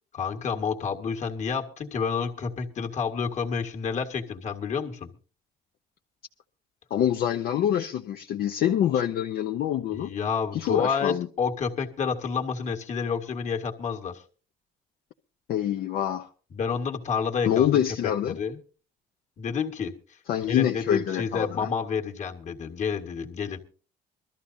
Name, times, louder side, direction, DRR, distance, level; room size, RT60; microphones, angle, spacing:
voice 1, 0.1-5.1 9.9-14.2 16.5-18.6 19.4-19.9 20.4-23.6, left 6 dB, 45° left, 1.8 m, -29 dB
voice 2, 6.9-10.1 10.5-11.3 15.5-16.3 17.5-18.4 20.3-21.7, left 10 dB, 65° left, 0.8 m, -25 dB
22.5 x 13.5 x 2.7 m
cardioid pair, 110°, 17 cm